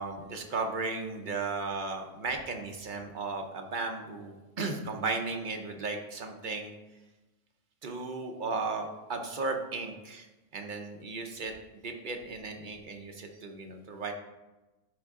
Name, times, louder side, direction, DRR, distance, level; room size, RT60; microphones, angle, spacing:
voice 1, 0.0-6.7 7.8-10.3 10.5-14.1, right 3 dB, 45° right, 3 dB, 0.8 m, -35 dB
9.8 x 3.6 x 3.6 m, 1.1 s
omnidirectional pair, 1.3 m